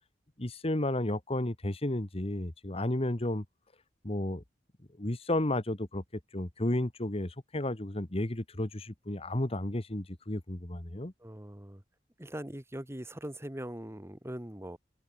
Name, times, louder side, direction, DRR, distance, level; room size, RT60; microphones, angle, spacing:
voice 1, 0.4-3.4 4.0-4.4 5.0-11.1, left 1 dB, 35° left, 1.6 m, -32 dB
voice 2, 11.2-11.8 12.2-14.8, right 1 dB, 15° right, 1.8 m, -41 dB
head